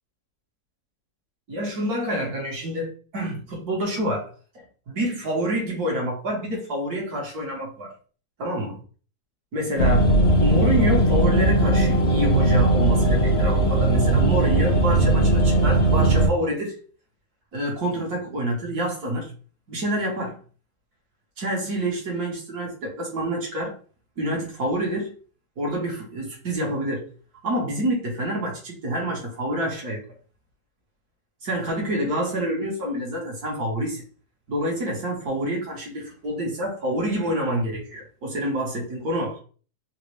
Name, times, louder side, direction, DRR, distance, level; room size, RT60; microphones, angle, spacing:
voice 1, 1.5-7.9 8.4-8.8 9.5-10.1 10.4-16.8 17.5-19.3 19.7-20.4 21.4-23.8 24.2-25.1 25.6-27.1 27.4-30.0 31.4-34.0 34.5-39.4, right 1 dB, 60° right, 1.6 m, -27 dB
sound 1, 9.8-16.3, right 2 dB, 85° left, 0.5 m, -19 dB
3.9 x 2.1 x 3.1 m
omnidirectional pair, 1.9 m